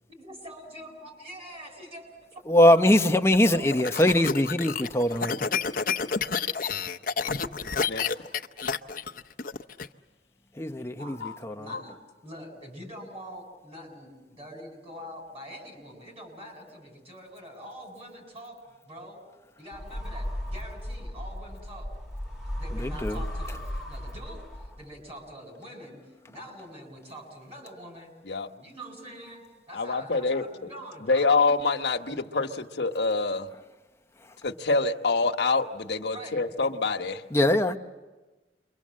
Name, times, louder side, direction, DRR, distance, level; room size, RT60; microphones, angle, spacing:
voice 1, 0.1-2.4 2.7-2.8 3.4-4.2 8.1-8.5 10.9-11.2 11.6-12.0 12.2-18.6 18.8-19.2 19.6-21.9 22.6-24.4 24.8-26.0 26.3-28.1 28.5-31.3 36.1-36.4, equal, 35° right, 2 dB, 7.2 m, -44 dB
voice 2, 2.5-5.4 10.6-11.2 11.4-11.7 22.8-23.2 37.3-37.8, left 1 dB, 15° left, 6 dB, 0.9 m, -22 dB
sound 1, 3.3-9.9, left 5 dB, 55° left, 0.8 m, -29 dB
sound 2, 19.7-25.0, left 1 dB, ahead, 1.9 m, -35 dB
voice 3, 29.7-30.5 31.0-33.5 34.4-37.2, left 3 dB, 70° left, 3 dB, 1.2 m, -26 dB
29.0 x 24.0 x 7.6 m, 1.2 s
head